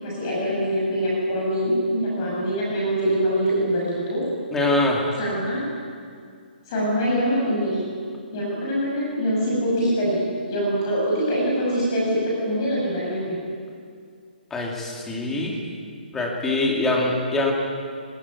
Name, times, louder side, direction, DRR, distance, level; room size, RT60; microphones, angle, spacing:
voice 1, 0.0-4.2 5.2-5.6 6.7-7.8 8.3-13.4, equal, 25° left, -5 dB, 6.5 m, -24 dB
voice 2, 4.5-5.1 14.5-15.6 16.1-17.5, left 2 dB, 5° left, -2 dB, 2.3 m, -23 dB
21.5 x 20.0 x 9.6 m, 2.2 s
hypercardioid pair, 175°, 6 cm